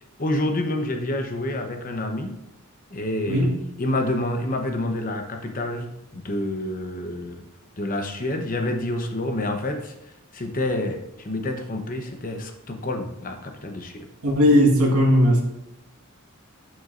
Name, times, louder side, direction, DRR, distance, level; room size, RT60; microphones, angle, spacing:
voice 1, 0.2-2.3 2.9-3.5 3.8-7.5 7.8-9.9 10.3-14.1, left 1 dB, 40° left, 4 dB, 0.9 m, -28 dB
voice 2, 14.2-15.4, equal, 80° right, -1 dB, 1.7 m, -17 dB
11.5 x 6.3 x 2.5 m, 0.89 s
head